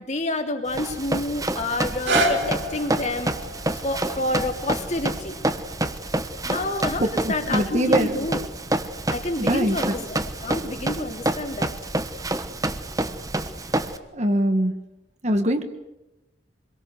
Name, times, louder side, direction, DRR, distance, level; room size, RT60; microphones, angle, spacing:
voice 1, 0.0-3.3 3.7-5.4 6.4-8.4 9.1-11.7, left 2 dB, 35° left, 4 dB, 3.0 m, -28 dB
Run, 0.7-14.0, right 1 dB, 20° right, 1.2 m, -28 dB
sound 1, 2.1-7.9 8.6-8.7, right 1 dB, 70° right, 3.6 m, -31 dB
voice 2, 7.0-8.2 9.4-10.0 14.1-14.8 15.2-15.6, right 1 dB, 35° right, 7 dB, 1.8 m, -23 dB
26.5 x 22.0 x 8.0 m, 0.96 s
head